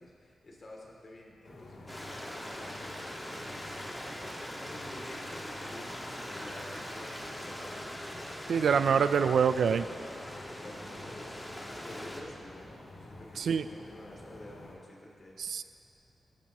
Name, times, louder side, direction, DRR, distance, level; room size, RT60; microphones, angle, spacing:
voice 1, 0.0-3.4 3.8-9.0 10.0-10.1 10.5-15.4, left 1 dB, 45° left, -2 dB, 2.8 m, -51 dB
sound 1, 1.4-14.7, left 2 dB, 75° left, 2.9 m, -49 dB
Stream, 1.9-12.2, equal, 15° left, 1.7 m, -42 dB
voice 2, 8.5-9.9 13.4-13.7 15.4-15.6, right 6 dB, 85° right, 11 dB, 0.4 m, -25 dB
17.5 x 14.0 x 3.0 m, 2.6 s
wide cardioid pair, 110°, 0 cm